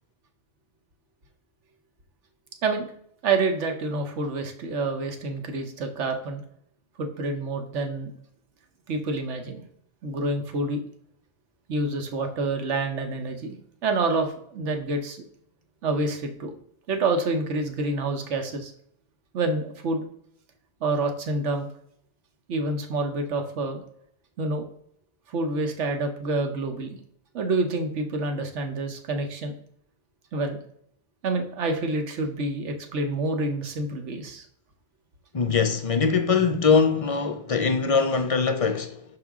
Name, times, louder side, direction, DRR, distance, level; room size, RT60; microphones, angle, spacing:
voice 1, 3.2-6.4 7.0-8.1 8.9-9.6 10.0-10.8 11.7-13.5 13.8-15.2 15.8-16.5 16.9-18.7 19.3-20.0 20.8-21.7 22.5-23.8 24.4-24.6 25.3-27.0 27.3-29.5 30.3-30.6 31.2-34.5, right 3 dB, 80° right, 1.2 m, -27 dB
voice 2, 35.3-39.0, left 5 dB, 50° left, 0.4 m, -22 dB
6.0 x 4.9 x 3.6 m
omnidirectional pair, 1.2 m